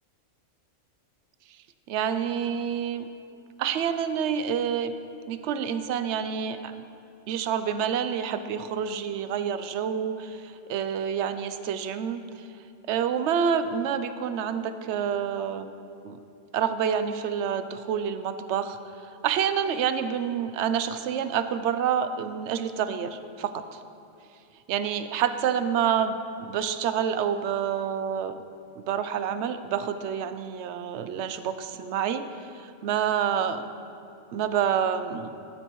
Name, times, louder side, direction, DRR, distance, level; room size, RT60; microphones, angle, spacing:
voice 1, 1.9-3.1 3.6-4.9 5.3-6.7 7.3-12.2 12.9-15.7 16.0-16.2 16.5-23.8 24.7-28.3 28.8-32.3 32.5-33.6 34.3-35.4, right 8 dB, 65° right, 10 dB, 0.8 m, -28 dB
13.0 x 12.0 x 3.1 m, 2.6 s
omnidirectional pair, 1.4 m